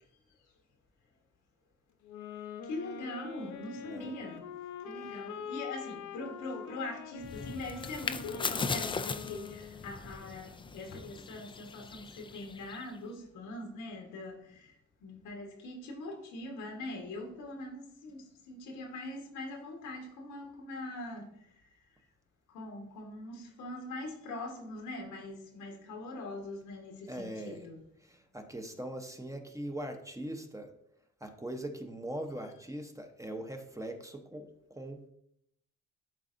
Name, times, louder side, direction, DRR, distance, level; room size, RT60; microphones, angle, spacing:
sound 1, 2.0-9.9, left 7 dB, 70° left, 0.8 m, -44 dB
voice 1, 2.6-4.4 4.8-21.7 22.5-27.9, left 2 dB, 90° left, 1.4 m, -42 dB
sound 2, 7.2-13.0, left 4 dB, 15° left, 0.3 m, -39 dB
voice 2, 27.1-27.7 28.1-30.7 31.2-34.5 34.8-35.1, right 1 dB, 10° right, 0.8 m, -41 dB
11.0 x 4.0 x 2.6 m
cardioid pair, 90°, 30 cm